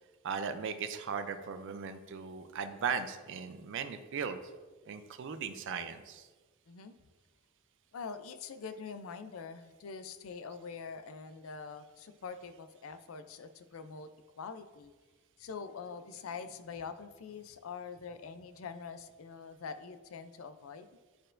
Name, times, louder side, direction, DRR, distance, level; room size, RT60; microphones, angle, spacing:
voice 1, 0.2-4.4 4.9-6.3, right 6 dB, 60° right, 9 dB, 0.4 m, -37 dB
voice 2, 7.9-14.1 14.4-14.9 15.4-20.9, left 5 dB, 75° left, 11 dB, 0.4 m, -44 dB
10.5 x 4.4 x 2.5 m, 1.3 s
head